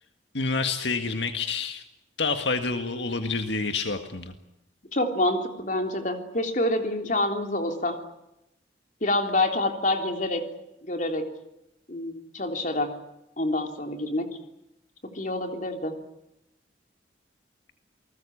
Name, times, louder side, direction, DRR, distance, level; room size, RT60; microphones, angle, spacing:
voice 1, 0.3-1.8 2.2-4.3, left 4 dB, 75° left, 7 dB, 1.8 m, -28 dB
voice 2, 4.9-8.0 9.0-10.5 10.8-11.2 11.9-12.9 13.4-14.4 15.0-16.0, left 1 dB, 45° left, 5 dB, 3.4 m, -27 dB
29.0 x 20.0 x 8.6 m, 0.85 s
head